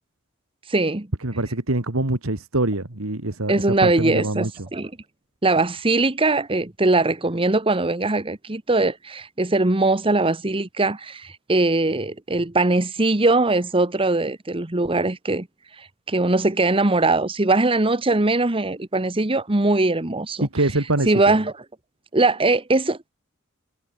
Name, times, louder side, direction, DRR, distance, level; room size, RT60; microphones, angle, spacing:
voice 1, 0.7-1.1 3.5-4.9 5.4-15.5 15.8-20.5 21.1-21.5 22.1-23.1, right 2 dB, 25° right, 1.1 m, -21 dB
voice 2, 1.2-3.6 3.8-4.7 20.4-21.4, right 2 dB, 75° right, 2.3 m, -24 dB
head